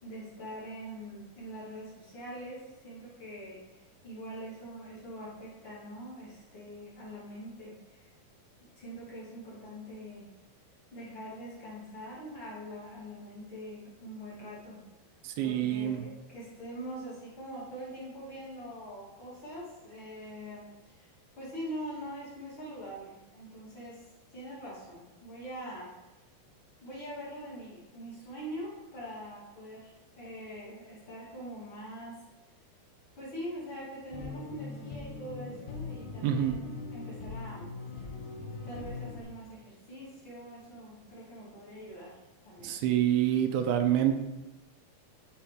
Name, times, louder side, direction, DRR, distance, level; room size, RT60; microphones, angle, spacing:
voice 1, 0.0-8.1 8.7-10.3 10.9-14.8 15.4-24.0 24.3-25.9 26.8-32.2 33.2-38.1 38.6-42.8, equal, 35° left, -8 dB, 2.4 m, -43 dB
voice 2, 15.4-16.0 36.2-36.6 42.6-44.2, right 10 dB, 85° right, 7 dB, 2.4 m, -27 dB
sound 1, 34.1-39.2, left 4 dB, 70° left, 2.0 m, -41 dB
10.5 x 3.6 x 4.9 m, 1.0 s
omnidirectional pair, 4.5 m